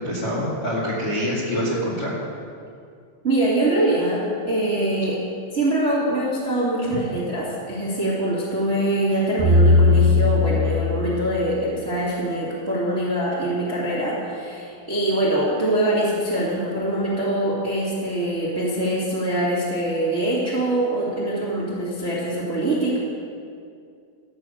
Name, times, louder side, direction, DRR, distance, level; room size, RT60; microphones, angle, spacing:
voice 1, 0.0-2.1 6.9-7.0, equal, 50° left, -6 dB, 1.7 m, -25 dB
voice 2, 3.2-4.2 4.5-5.2 5.5-23.0, right 1 dB, 45° right, -8 dB, 0.8 m, -23 dB
sound 1, 9.4-11.6, left 3 dB, 90° right, 2.0 m, -18 dB
13.5 x 6.5 x 8.4 m, 2.3 s
omnidirectional pair, 6.0 m